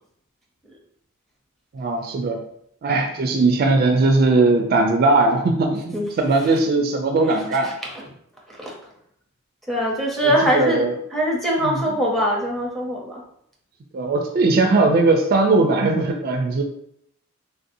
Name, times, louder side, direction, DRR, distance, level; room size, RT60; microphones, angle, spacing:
voice 1, 1.7-2.4 2.8-7.7 10.2-10.9 11.6-11.8 13.9-16.6, right 3 dB, 45° right, 3 dB, 0.3 m, -19 dB
voice 2, 9.7-10.9 11.1-13.2, equal, ahead, -3 dB, 0.6 m, -22 dB
3.5 x 2.6 x 2.6 m, 0.72 s
head